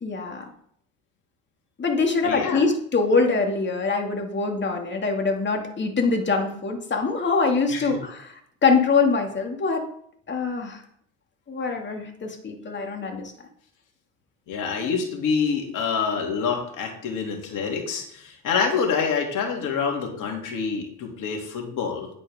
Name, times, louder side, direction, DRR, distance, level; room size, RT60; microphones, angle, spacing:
voice 1, 0.0-0.4 1.8-8.3 8.6-9.8 10.3-10.8 11.5-13.3, left 4 dB, 30° left, 3 dB, 2.5 m, -24 dB
voice 2, 2.2-2.6 7.7-8.0 14.5-22.1, left 5 dB, 60° left, 1 dB, 3.1 m, -26 dB
9.7 x 8.3 x 3.7 m, 0.65 s
supercardioid pair, 75°, 36 cm